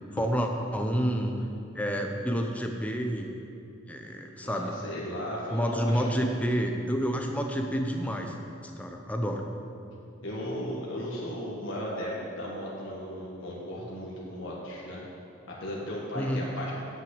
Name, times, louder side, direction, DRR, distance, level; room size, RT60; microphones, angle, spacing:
voice 1, 0.1-1.3 1.7-3.3 3.9-4.8 5.5-8.4 8.6-9.4 16.1-16.5, equal, 5° left, 3 dB, 0.7 m, -29 dB
voice 2, 4.4-6.2 10.2-15.0 15.5-16.7, equal, 70° left, -5 dB, 1.7 m, -36 dB
9.1 x 6.1 x 8.0 m, 2.6 s
head